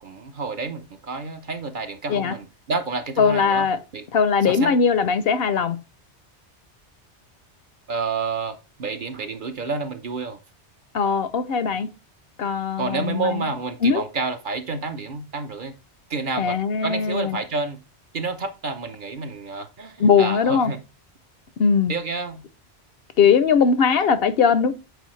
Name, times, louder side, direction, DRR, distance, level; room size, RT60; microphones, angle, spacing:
voice 1, 0.0-3.7 3.9-4.1 4.4-4.8 7.9-10.4 12.8-15.7 16.1-17.8 18.1-20.8 21.9-22.4, right 4 dB, 50° right, 0.9 m, -29 dB
voice 2, 3.2-3.8 4.1-5.8 10.9-11.9 12.4-13.4 13.8-14.0 16.4-17.4 20.0-20.7 21.6-21.9 23.2-24.7, left 6 dB, 65° left, 0.7 m, -20 dB
8.2 x 4.1 x 3.1 m
omnidirectional pair, 1.2 m